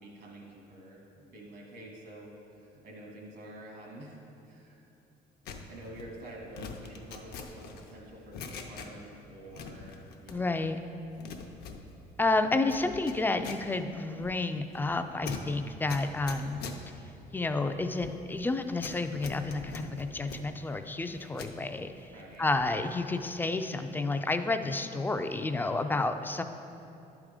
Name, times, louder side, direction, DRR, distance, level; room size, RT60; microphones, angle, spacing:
voice 1, 0.0-4.2 4.4-4.9 5.7-10.6 22.1-22.5, right 1 dB, 75° right, -1 dB, 1.6 m, -48 dB
sound 1, 5.5-9.2 9.5-10.7 11.0-21.6 22.0-22.9 23.1-23.4, left 4 dB, 70° left, 0.7 m, -44 dB
voice 2, 10.3-10.8 12.2-16.6 17.3-21.9 22.4-26.4, left 3 dB, 10° left, 8 dB, 0.3 m, -30 dB
10.5 x 3.6 x 4.9 m, 2.8 s
cardioid pair, 110°, 17 cm